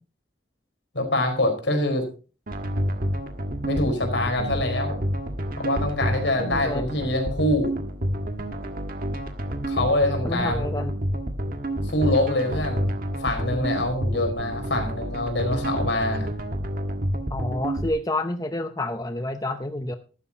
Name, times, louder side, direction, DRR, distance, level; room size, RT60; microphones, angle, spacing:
voice 1, 0.9-2.0 3.6-5.0 5.6-7.7 9.7-10.7 11.8-12.9 13.2-16.3, left 1 dB, 75° left, 4 dB, 4.6 m, -25 dB
sound 1, 2.5-17.9, equal, 50° right, 1.6 m, -29 dB
voice 2, 6.4-6.9 10.2-11.0 17.3-20.0, left 1 dB, 20° left, 8 dB, 0.8 m, -29 dB
14.5 x 12.5 x 2.9 m, 0.34 s
head